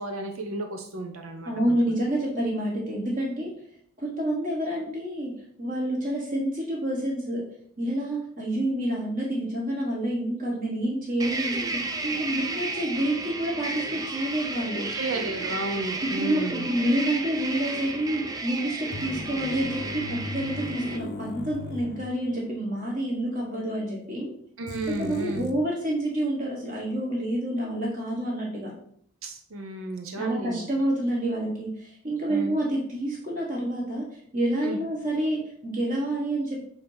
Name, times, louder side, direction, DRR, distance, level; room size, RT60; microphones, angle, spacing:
voice 1, 0.0-2.0 14.9-16.7 24.6-25.5 29.2-30.7 32.3-32.5 34.6-34.8, right 2 dB, 75° right, 4 dB, 0.8 m, -33 dB
voice 2, 1.4-3.5 4.0-5.3 5.6-7.4 7.8-11.6 12.0-14.9 16.2-24.3 24.9-28.7 30.2-36.7, right 1 dB, 40° right, -3 dB, 1.4 m, -28 dB
sound 1, 11.2-21.0, right 3 dB, 15° right, 0.5 m, -33 dB
sound 2, 18.9-22.7 22.9-23.0 24.7-25.5, left 2 dB, 50° left, 0.6 m, -38 dB
8.1 x 2.9 x 5.5 m, 0.63 s
head